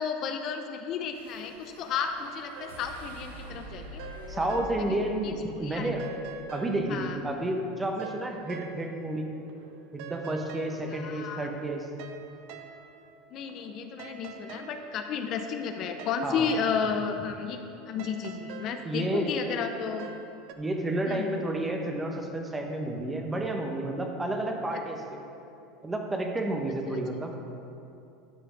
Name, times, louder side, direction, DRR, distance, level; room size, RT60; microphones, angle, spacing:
voice 1, 0.0-4.5 4.8-5.9 6.9-7.2 10.9-11.5 13.3-17.6 17.9-20.1 21.1-21.5 26.9-27.0, left 6 dB, 50° left, 6 dB, 0.7 m, -33 dB
sound 1, 1.1-7.4, right 1 dB, 90° right, 1.0 m, -47 dB
sound 2, 2.6-5.2 5.5-9.2 9.5-20.5, right 6 dB, 65° right, 0.6 m, -47 dB
voice 2, 4.3-5.4 5.6-6.0 6.5-9.3 9.9-11.9 16.2-16.5 18.8-19.4 20.6-25.2 25.8-27.4, right 1 dB, 15° right, 3 dB, 1.2 m, -31 dB
12.0 x 5.0 x 5.2 m, 2.7 s
hypercardioid pair, 90°, 0 cm